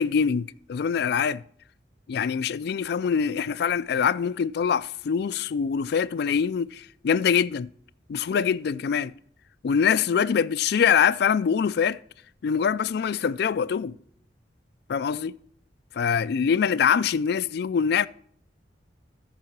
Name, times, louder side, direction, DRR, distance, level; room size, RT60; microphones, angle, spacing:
voice 1, 0.0-1.4 2.1-7.7 8.1-9.1 9.6-12.0 12.4-14.0 14.9-15.4 15.9-18.1, left 7 dB, 65° left, 0.3 m, -24 dB
14.0 x 4.8 x 5.9 m
head